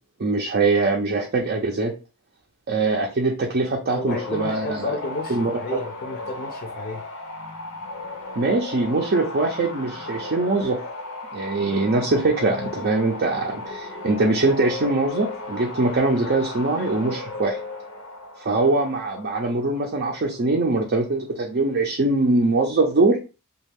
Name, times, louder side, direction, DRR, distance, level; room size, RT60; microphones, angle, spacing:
voice 1, 0.2-1.9 2.7-4.9 5.3-5.5 8.4-10.8 11.3-17.6 18.4-23.2, right 3 dB, 45° right, 0 dB, 0.5 m, -22 dB
voice 2, 3.8-7.0, left 2 dB, 45° left, 3 dB, 0.5 m, -32 dB
sound 1, 4.1-20.8, left 2 dB, 85° left, 0.7 m, -35 dB
3.2 x 2.3 x 3.3 m, 0.33 s
head